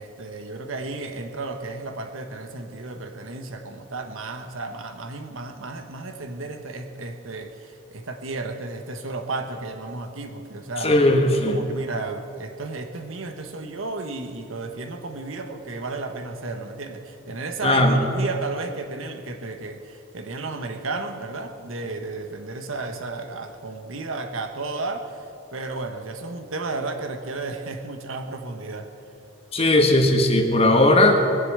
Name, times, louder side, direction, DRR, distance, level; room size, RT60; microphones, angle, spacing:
voice 1, 0.0-10.9 11.3-25.2 25.5-28.9, right 3 dB, 85° right, 6 dB, 1.2 m, -33 dB
voice 2, 10.8-11.6 17.6-18.0 29.5-31.2, left 1 dB, 30° left, 4 dB, 1.3 m, -17 dB
20.5 x 7.1 x 8.1 m, 2.6 s
head